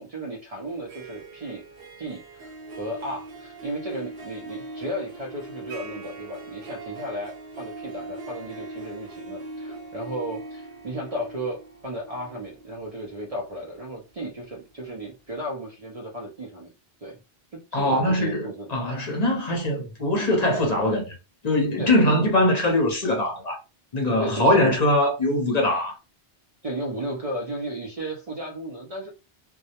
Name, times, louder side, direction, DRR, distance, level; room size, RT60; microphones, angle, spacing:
voice 1, 0.0-1.6 2.0-2.5 2.8-16.7 17.0-17.2 17.5-18.7 21.8-22.3 24.2-24.7 26.6-29.1, right 1 dB, 45° right, 0.5 m, -34 dB
Harp, 0.7-14.6, right 2 dB, 65° right, 0.9 m, -41 dB
voice 2, 17.7-21.2 21.4-23.6 23.9-26.0, left 1 dB, 45° left, 0.7 m, -22 dB
2.3 x 2.0 x 2.7 m
omnidirectional pair, 1.0 m